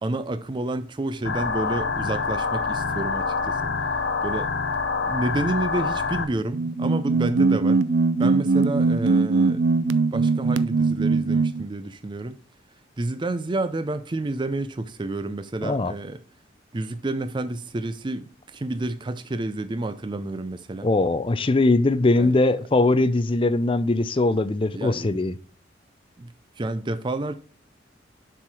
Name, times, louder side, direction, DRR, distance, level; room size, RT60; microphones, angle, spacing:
voice 1, 0.0-3.7 4.2-4.5 5.0-7.8 8.2-12.4 13.0-16.2 16.7-20.9 22.2-22.3 24.7-25.2 26.2-27.3, right 2 dB, 25° right, 0.4 m, -30 dB
sound 1, 1.2-6.2, left 4 dB, 75° left, 0.8 m, -26 dB
sound 2, 6.5-11.7, right 3 dB, 85° right, 0.5 m, -21 dB
voice 2, 15.6-15.9 20.8-25.3, left 2 dB, 30° left, 0.5 m, -21 dB
7.1 x 4.7 x 4.7 m
head